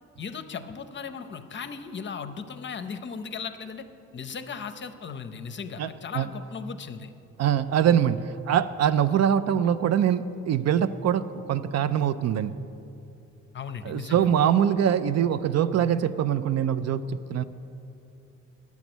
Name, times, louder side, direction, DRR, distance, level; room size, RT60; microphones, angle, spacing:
voice 1, 0.2-3.8 4.1-7.1 13.5-14.3, left 6 dB, 40° left, 9 dB, 0.6 m, -37 dB
voice 2, 7.4-12.6 13.8-17.4, right 9 dB, 60° right, 13 dB, 0.4 m, -23 dB
10.5 x 7.1 x 6.1 m, 2.7 s
cardioid pair, 90°, 30 cm